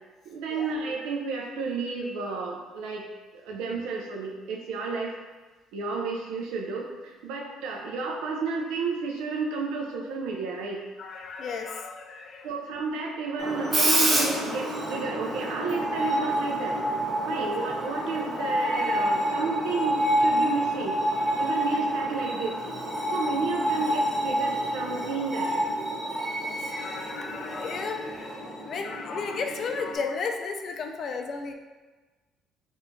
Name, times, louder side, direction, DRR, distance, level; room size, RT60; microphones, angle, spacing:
voice 1, 0.3-3.1 3.3-5.1 5.7-10.8 12.4-16.8 17.2-21.0 21.4-22.6 23.1-25.5, right 4 dB, 85° right, 0 dB, 0.4 m, -32 dB
voice 2, 11.0-12.6 13.4-13.5 14.0-14.1 17.3-17.5 26.3-31.5, left 4 dB, 50° left, 4 dB, 0.3 m, -34 dB
Screech, 13.4-30.0, right 1 dB, 30° right, 1.0 m, -28 dB
4.2 x 2.3 x 2.6 m, 1.3 s
cardioid pair, 95°, 0 cm